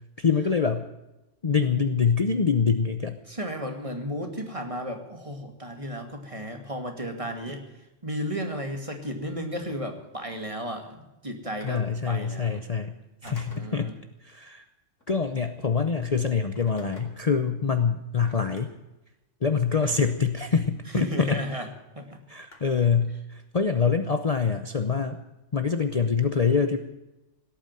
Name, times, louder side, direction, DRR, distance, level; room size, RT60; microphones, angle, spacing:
voice 1, 0.2-0.9 1.4-3.2 11.6-12.9 13.2-14.0 14.2-14.6 15.1-18.7 19.4-21.4 22.3-25.2 25.5-26.8, left 5 dB, 35° left, 8 dB, 0.9 m, -25 dB
voice 2, 3.3-7.6 8.0-12.6 13.2-13.9 20.9-21.7 21.9-22.2, equal, 25° right, 4 dB, 2.3 m, -34 dB
Telephone, 11.6-11.9 13.2-13.7 15.0-15.4 16.6-17.3 18.3-18.6 19.7-20.3 21.3-21.4 22.5-22.9, left 1 dB, 80° left, 3.3 m, -48 dB
17.5 x 9.0 x 9.1 m, 0.98 s
omnidirectional pair, 1.3 m